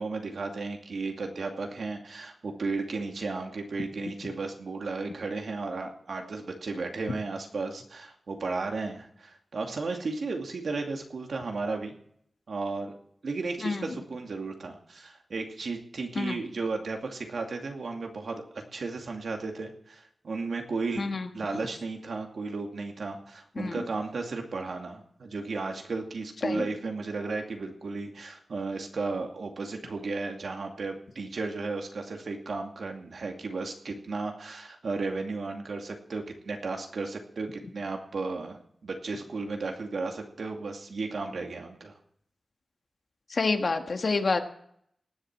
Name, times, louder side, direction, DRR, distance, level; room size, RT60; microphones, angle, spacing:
voice 1, 0.0-11.9 12.5-12.9 13.2-18.4 18.7-41.9, right 3 dB, 75° right, 3 dB, 2.4 m, -34 dB
voice 2, 21.0-21.3 23.6-23.8 26.4-26.7 43.3-44.4, left 3 dB, 55° left, 6 dB, 1.5 m, -28 dB
19.0 x 7.9 x 7.3 m, 0.68 s
wide cardioid pair, 120°, 0 cm